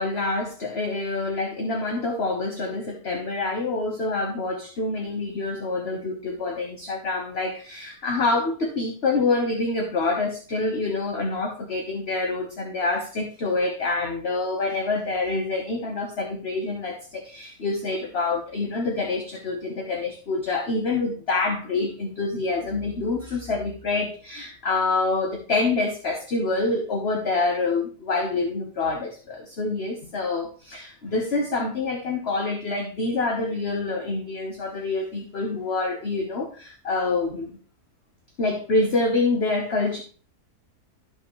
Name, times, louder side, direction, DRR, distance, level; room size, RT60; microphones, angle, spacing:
voice 1, 0.0-37.6 38.4-40.0, left 3 dB, 45° left, 3 dB, 1.4 m, -26 dB
13.0 x 5.6 x 3.2 m, 0.39 s
omnidirectional pair, 1.7 m